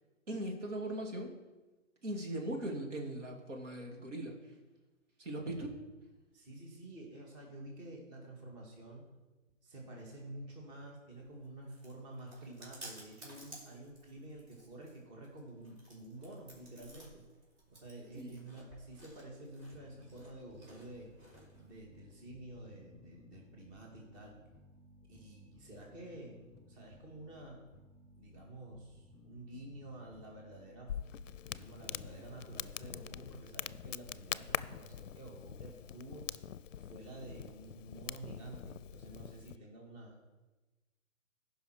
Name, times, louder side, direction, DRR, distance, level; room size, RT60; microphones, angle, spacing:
voice 1, 0.3-1.3 2.0-4.4 5.2-5.7 18.1-18.4, right 1 dB, 65° right, 1 dB, 2.4 m, -39 dB
voice 2, 6.3-9.2 9.6-17.2 17.7-21.1 21.5-24.4 25.1-26.4 26.7-27.7 28.2-31.0 31.4-36.3 36.8-40.2, right 1 dB, 25° right, -1 dB, 1.9 m, -50 dB
Chewing mastication, 11.1-21.8, right 1 dB, 40° right, 3.9 m, -56 dB
sound 1, 19.7-32.6, left 2 dB, ahead, 3.7 m, -60 dB
Crackle, 30.9-39.6, left 9 dB, 70° left, 0.5 m, -44 dB
15.5 x 5.6 x 4.6 m, 1.1 s
figure-of-eight pair, 140°, 39 cm